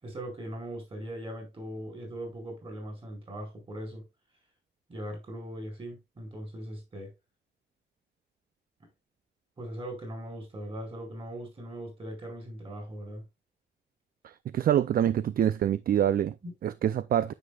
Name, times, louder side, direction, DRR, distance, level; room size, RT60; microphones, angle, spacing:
voice 1, 0.0-4.1 4.9-7.1 9.6-13.2 16.4-16.5, right 1 dB, 30° right, 4.8 m, -40 dB
voice 2, 14.5-16.3 16.6-17.3, right 10 dB, 55° right, 0.4 m, -25 dB
9.6 x 7.7 x 2.3 m
wide cardioid pair, 165°, 18 cm